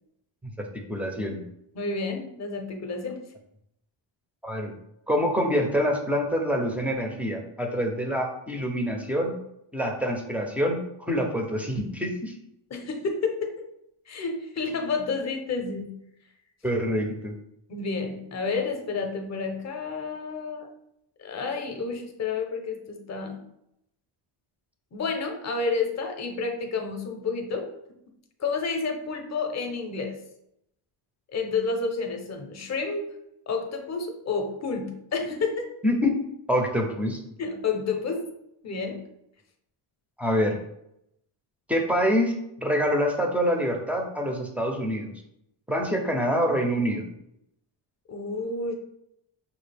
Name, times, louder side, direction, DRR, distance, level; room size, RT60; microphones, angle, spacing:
voice 1, 0.4-1.4 4.4-4.7 5.1-9.4 9.7-12.3 16.6-17.3 35.8-36.2 36.5-37.2 40.2-40.6 41.7-45.1 45.7-47.0, equal, 5° right, 1 dB, 0.4 m, -26 dB
voice 2, 1.7-3.2 12.7-13.7 14.1-15.9 17.7-20.7 21.2-23.4 24.9-27.7 28.4-30.2 31.3-33.1 33.5-35.7 37.4-38.3 38.6-39.0 48.1-48.7, left 4 dB, 35° left, 4 dB, 0.7 m, -30 dB
6.0 x 2.4 x 3.3 m, 0.79 s
cardioid pair, 155°, 50 cm